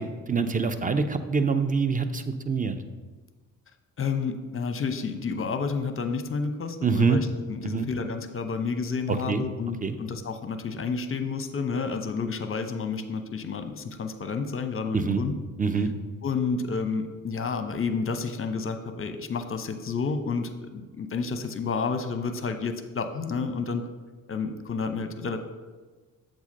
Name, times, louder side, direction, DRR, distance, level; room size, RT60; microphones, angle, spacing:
voice 1, 0.0-2.8 6.8-7.2 7.6-7.9 9.1-9.4 9.8-9.9 14.9-15.2 15.6-15.9, right 5 dB, 20° right, 10 dB, 0.6 m, -25 dB
voice 2, 4.0-15.3 16.2-23.9 24.3-25.4, left 5 dB, 30° left, 9 dB, 0.8 m, -30 dB
7.2 x 3.8 x 5.3 m, 1.3 s
hypercardioid pair, 50°, 41 cm